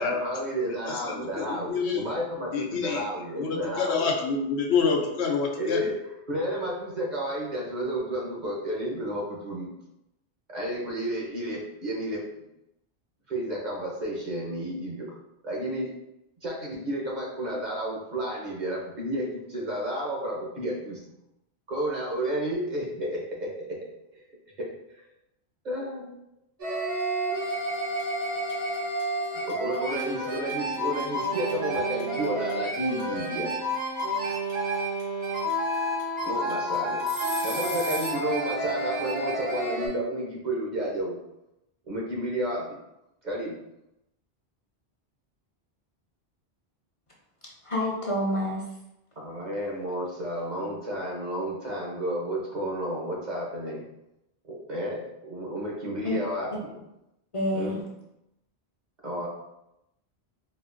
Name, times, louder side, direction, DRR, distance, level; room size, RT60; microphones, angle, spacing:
voice 1, 0.0-4.0 5.6-5.9 6.3-9.7 10.5-12.2 13.3-15.2 15.4-15.9 16.4-21.0 21.7-23.8 24.6-24.7 25.6-26.1 29.5-33.6 36.2-37.0 37.4-41.2 41.9-42.8 43.2-43.6 49.2-53.8 54.5-56.7 57.5-57.8 59.0-59.3, equal, 45° right, -3 dB, 0.9 m, -31 dB
voice 2, 0.9-2.1 2.5-3.0 3.4-5.9, left 5 dB, 80° left, 1 dB, 0.9 m, -27 dB
sound 1, 26.6-39.9, right 1 dB, 70° right, 1.3 m, -30 dB
sound 2, 27.0-27.2 27.5-38.3, right 2 dB, 90° right, 1.3 m, -38 dB
voice 3, 47.6-48.7 56.0-56.2 57.3-57.8, left 1 dB, 35° left, -3 dB, 0.6 m, -28 dB
4.2 x 2.4 x 2.5 m, 0.86 s
omnidirectional pair, 1.1 m